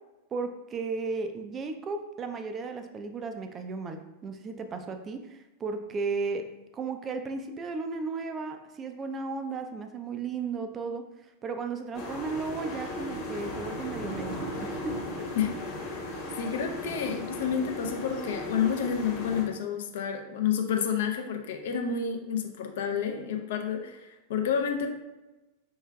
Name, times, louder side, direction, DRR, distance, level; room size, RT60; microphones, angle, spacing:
voice 1, 0.3-6.5 6.7-11.1 11.4-14.7, right 4 dB, 25° right, 7 dB, 0.3 m, -35 dB
sound 1, 11.9-19.5, left 1 dB, 40° left, 1.2 m, -36 dB
voice 2, 16.4-24.9, left 7 dB, 55° left, 4 dB, 0.5 m, -29 dB
4.6 x 3.2 x 2.2 m, 1.0 s
figure-of-eight pair, 90°, 0 cm